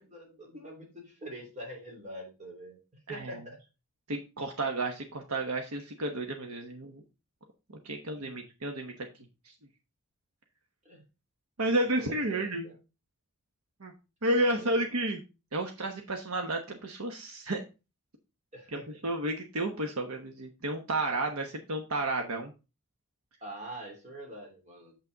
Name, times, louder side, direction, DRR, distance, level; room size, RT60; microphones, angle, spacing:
voice 1, 0.0-2.8 3.1-3.6 8.2-8.4 10.8-11.0 12.0-12.8 14.4-14.8 18.5-18.8 23.4-25.0, right 1 dB, 35° right, 0 dB, 3.0 m, -44 dB
voice 2, 3.1-3.4 4.1-7.0 7.8-9.1 9.4-9.5 11.6-12.7 13.8-13.9 14.2-15.2 15.5-17.6 18.7-22.5, right 1 dB, 90° right, 4 dB, 1.1 m, -31 dB
7.4 x 5.9 x 3.9 m, 0.29 s
head